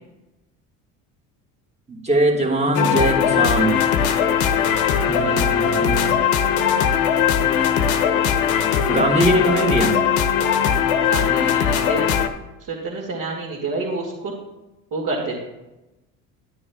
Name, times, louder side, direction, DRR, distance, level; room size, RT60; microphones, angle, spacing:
voice 1, 1.9-3.8 5.0-6.2 8.9-9.9, right 1 dB, 15° right, 1 dB, 1.7 m, -21 dB
sound 1, 2.6-11.3, right 1 dB, 85° right, 2.0 m, -41 dB
sound 2, 2.7-12.3, left 8 dB, 80° left, 0.8 m, -19 dB
voice 2, 11.1-12.2 12.7-14.3 14.9-15.4, right 3 dB, 50° right, -4 dB, 2.0 m, -28 dB
10.5 x 9.7 x 2.3 m, 1.0 s
hypercardioid pair, 75°, 41 cm